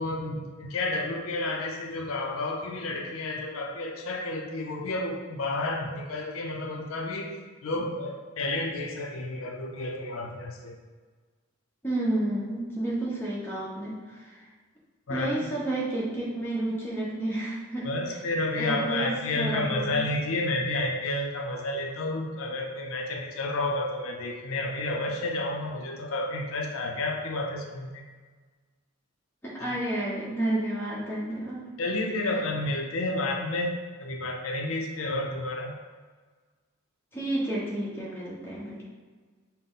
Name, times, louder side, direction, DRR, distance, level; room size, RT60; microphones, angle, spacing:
voice 1, 0.0-10.8 15.1-15.5 17.8-28.0 31.8-35.8, left 2 dB, 75° left, 2 dB, 0.5 m, -31 dB
voice 2, 11.8-14.4 15.1-17.8 18.6-20.0 29.4-31.6 37.1-38.9, right 1 dB, 10° left, -6 dB, 1.0 m, -31 dB
5.4 x 2.1 x 3.9 m, 1.4 s
head